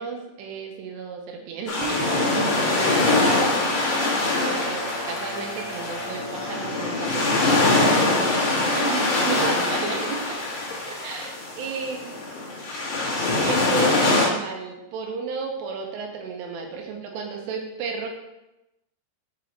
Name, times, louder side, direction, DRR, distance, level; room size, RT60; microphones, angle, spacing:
voice 1, 0.0-3.6 4.3-10.4 10.9-12.2 13.3-18.1, right 5 dB, 85° right, 1 dB, 3.1 m, -33 dB
sound 1, 1.7-14.3, left 2 dB, 50° left, 1.4 m, -23 dB
sound 2, 2.0-10.4, left 1 dB, 65° right, 2.1 m, -38 dB
6.1 x 5.6 x 4.5 m, 0.94 s
omnidirectional pair, 4.8 m